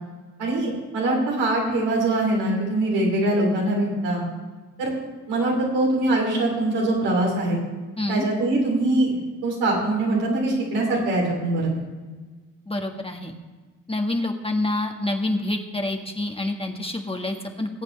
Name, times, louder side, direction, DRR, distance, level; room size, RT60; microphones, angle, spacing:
voice 1, 0.4-4.2 4.8-4.9 5.3-7.6 8.1-11.7, right 2 dB, 75° right, -2 dB, 3.4 m, -23 dB
voice 2, 12.7-13.3 13.9-17.7, left 2 dB, 15° left, 3 dB, 1.6 m, -27 dB
20.0 x 8.5 x 3.3 m, 1.3 s
hypercardioid pair, 45°, 39 cm